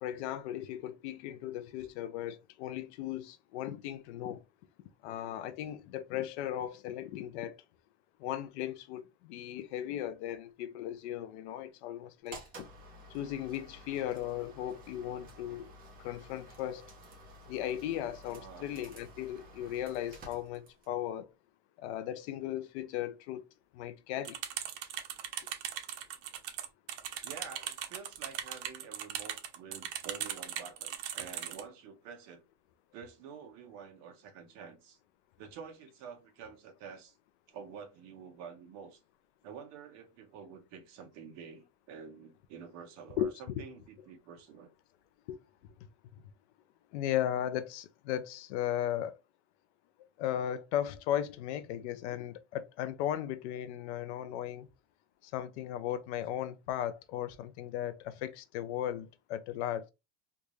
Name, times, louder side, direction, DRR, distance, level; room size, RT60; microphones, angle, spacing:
voice 1, 0.0-4.4 5.0-7.6 8.2-12.4 13.1-15.7 16.0-16.9 17.5-21.3 21.8-23.4 23.7-24.4 43.2-43.6 45.3-45.4 46.9-49.2 50.2-54.7 55.2-59.9, left 11 dB, 70° left, 0.7 m, -36 dB
sound 1, 12.3-21.0, right 1 dB, 25° right, 1.0 m, -52 dB
voice 2, 18.3-18.7 27.2-32.4 32.9-35.0 35.4-37.1 37.5-39.0 39.4-44.7, right 6 dB, 45° right, 1.1 m, -48 dB
sound 2, 24.2-31.6, right 10 dB, 75° right, 0.9 m, -39 dB
3.4 x 2.6 x 3.1 m
supercardioid pair, 165°, 36 cm